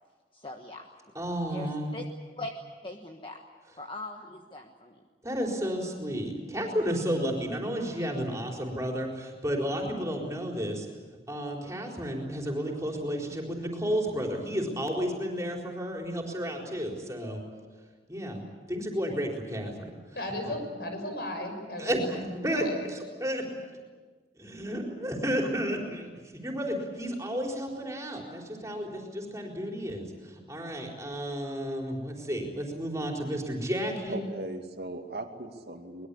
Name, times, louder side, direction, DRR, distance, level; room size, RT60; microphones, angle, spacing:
voice 1, 0.3-0.9 1.5-2.0 2.4-2.5 2.8-3.4 3.8-5.0, left 2 dB, 30° left, 3 dB, 1.4 m, -41 dB
voice 2, 1.1-2.0 5.2-10.9 11.3-17.4 18.1-18.4 18.7-19.9 20.4-20.5 21.8-23.4 24.4-34.2, equal, 20° right, 0 dB, 4.3 m, -32 dB
voice 3, 20.1-22.8, left 1 dB, 65° left, 5 dB, 6.2 m, -35 dB
voice 4, 34.1-36.1, right 2 dB, 70° right, 4 dB, 2.5 m, -38 dB
23.5 x 21.0 x 8.5 m, 1.4 s
head